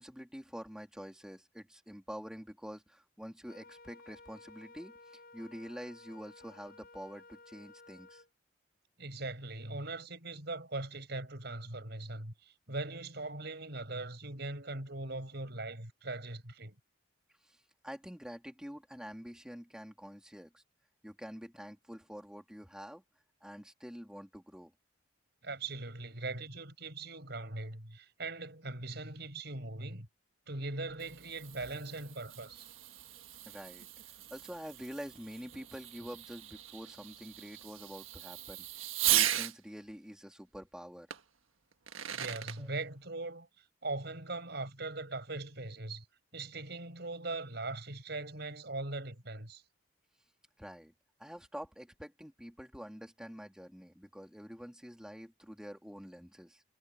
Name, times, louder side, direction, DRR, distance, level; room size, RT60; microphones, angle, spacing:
voice 1, 0.0-8.2 17.4-20.6 21.0-23.0 23.4-24.7 33.4-41.1 42.6-42.7 50.6-50.9 51.2-56.6, equal, 5° right, 3.1 m, -47 dB
Wind instrument woodwind instrument, 3.4-8.3, left 3 dB, 45° left, 7.3 m, -56 dB
voice 2, 9.0-16.8 25.4-30.1 30.5-32.7 42.1-43.5 43.8-46.0 46.3-49.6, right 2 dB, 55° right, 5.6 m, -40 dB
Fireworks, 30.7-39.6 41.1-41.2 41.7-42.6, right 12 dB, 80° right, 1.5 m, -37 dB
head